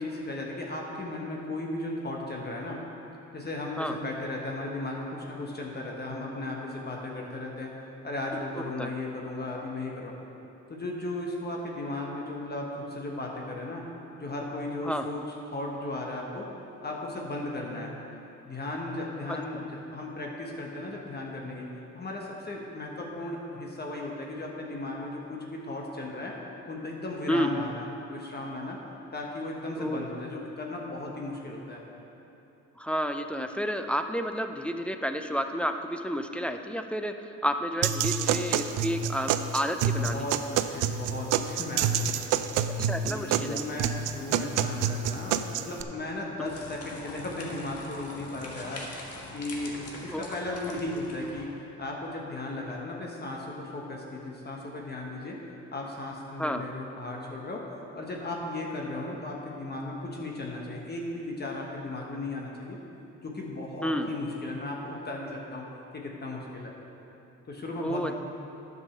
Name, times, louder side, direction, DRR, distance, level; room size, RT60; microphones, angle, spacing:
voice 1, 0.0-2.8 3.3-7.7 8.0-10.1 10.7-13.9 14.2-15.2 15.5-16.5 16.8-17.9 18.4-21.7 21.9-26.3 26.7-28.8 29.1-31.8 40.0-42.4 43.1-55.4 55.7-57.6 57.9-62.8 63.2-65.7 65.9-66.7 67.5-68.1, left 2 dB, 35° left, -1 dB, 1.3 m, -36 dB
voice 2, 8.5-8.9 14.8-15.1 19.3-19.4 27.3-27.5 29.8-30.1 32.8-40.3 42.8-43.6 50.0-50.3 56.4-56.6 63.8-64.1 67.8-68.1, equal, 5° left, 6 dB, 0.5 m, -31 dB
sound 1, 37.8-45.8, right 8 dB, 90° right, 0.5 m, -28 dB
sound 2, 46.4-51.4, left 2 dB, 55° left, 1.5 m, -43 dB
9.8 x 5.4 x 6.6 m, 2.9 s
cardioid pair, 90°, 30 cm